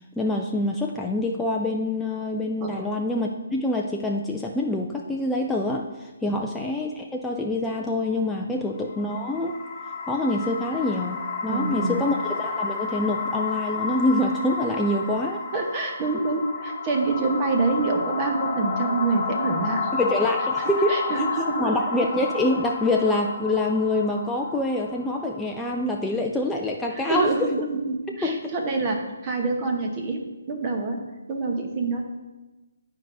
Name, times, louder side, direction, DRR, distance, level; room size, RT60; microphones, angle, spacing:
voice 1, 0.2-9.6 10.1-15.4 19.9-21.2 21.6-27.5 28.2-28.5, left 1 dB, 5° left, -1 dB, 0.3 m, -26 dB
sound 1, 8.8-26.0, left 4 dB, 25° left, 1.0 m, -31 dB
voice 2, 11.5-12.1 15.5-19.9 20.6-21.8 27.1-30.2 30.5-31.0 31.3-32.0, right 3 dB, 25° right, 2 dB, 0.9 m, -26 dB
10.5 x 4.5 x 2.6 m, 1.1 s
hypercardioid pair, 155°, 0 cm